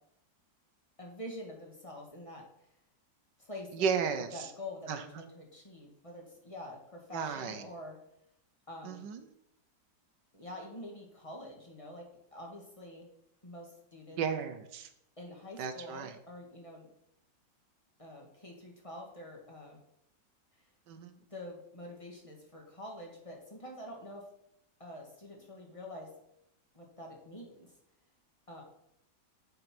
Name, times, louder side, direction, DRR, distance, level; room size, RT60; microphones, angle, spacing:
voice 1, 1.0-2.4 3.4-3.9 4.3-8.0 8.7-9.0 10.3-13.1 13.4-14.2 15.2-16.9 18.0-19.8 20.9-24.2 24.8-26.1 26.7-27.7 28.5-28.6, left 1 dB, 20° left, 0 dB, 1.7 m, -46 dB
voice 2, 3.7-4.5 4.9-5.2 7.1-7.6 8.8-9.3 14.2-14.9 15.6-16.2 20.9-21.1, right 6 dB, 75° right, 9 dB, 1.4 m, -34 dB
7.8 x 5.3 x 5.9 m, 0.77 s
omnidirectional pair, 1.9 m